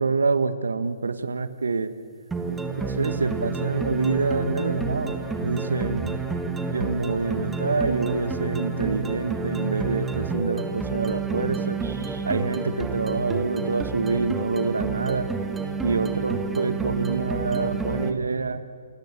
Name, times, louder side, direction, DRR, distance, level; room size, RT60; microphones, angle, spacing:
voice 1, 0.0-1.9 2.4-6.2 6.7-15.3 15.8-18.6, right 4 dB, 85° right, 11 dB, 1.6 m, -26 dB
sound 1, 2.3-18.1, right 4 dB, 10° right, 1.8 m, -30 dB
28.5 x 24.5 x 7.6 m, 2.3 s
hypercardioid pair, 140°, 0 cm